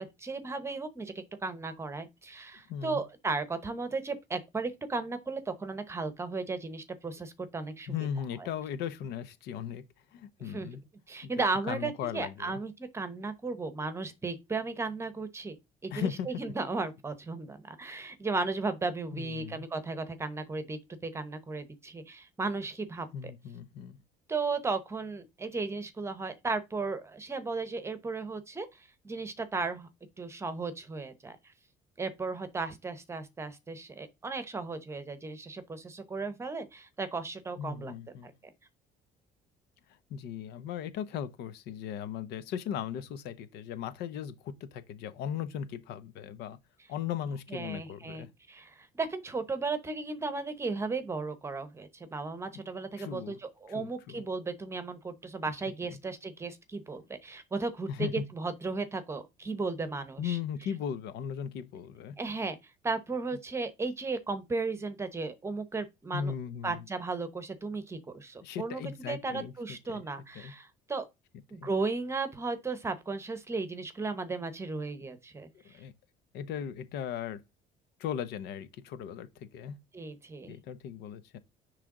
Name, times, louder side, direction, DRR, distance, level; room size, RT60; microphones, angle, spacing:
voice 1, 0.0-7.9 10.4-10.7 11.1-15.6 15.8-23.3 24.3-29.9 30.2-31.4 32.0-37.9 38.2-38.3 47.5-60.4 62.2-62.6 62.8-66.3 66.6-71.0 71.5-75.8 79.9-80.6, right 3 dB, 15° right, 0.9 m, -35 dB
voice 2, 2.7-3.0 7.9-9.8 10.1-10.8 11.2-11.3 11.7-12.6 15.9-16.3 19.1-19.7 23.1-24.0 37.6-38.3 40.1-46.6 46.9-48.3 53.0-53.4 53.7-54.2 55.9-56.0 57.9-58.2 60.2-62.2 66.1-66.8 68.4-70.0 70.3-70.5 71.5-71.7 75.6-75.9 76.3-77.4 78.0-79.8 80.5-81.4, left 8 dB, 75° left, 0.8 m, -37 dB
9.8 x 3.3 x 3.7 m
cardioid pair, 155°, 17 cm